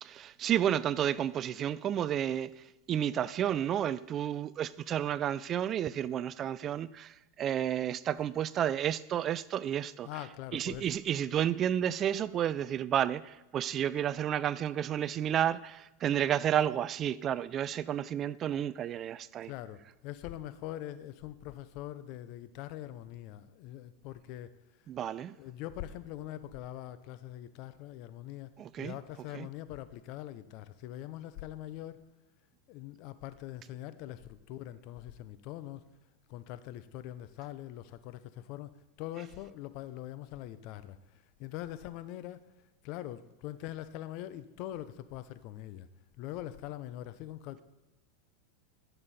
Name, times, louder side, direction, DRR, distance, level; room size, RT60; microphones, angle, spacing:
voice 1, 0.0-2.5 2.9-10.1 10.5-19.5 24.9-25.4 28.6-28.9 29.3-29.5, right 10 dB, 35° right, 0.3 m, -31 dB
voice 2, 10.0-10.9 19.4-24.6 25.3-32.1 32.7-35.9 36.3-42.5 42.8-45.9 46.2-47.6, left 13 dB, 55° left, 0.7 m, -43 dB
12.5 x 6.8 x 4.2 m
hypercardioid pair, 110°, 0 cm